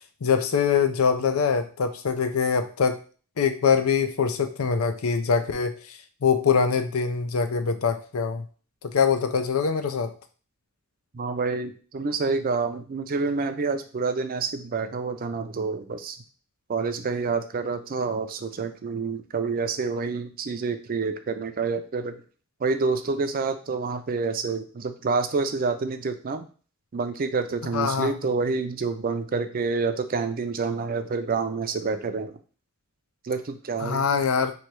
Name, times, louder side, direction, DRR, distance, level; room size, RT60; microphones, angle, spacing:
voice 1, 0.2-3.0 3.4-8.4 8.8-10.1 27.7-28.1 33.8-34.5, left 6 dB, 85° left, 9 dB, 0.5 m, -23 dB
voice 2, 11.1-16.2 16.7-22.2 22.6-26.4 26.9-32.3 33.2-34.1, right 4 dB, 45° right, 9 dB, 0.4 m, -28 dB
3.1 x 2.8 x 4.5 m, 0.39 s
head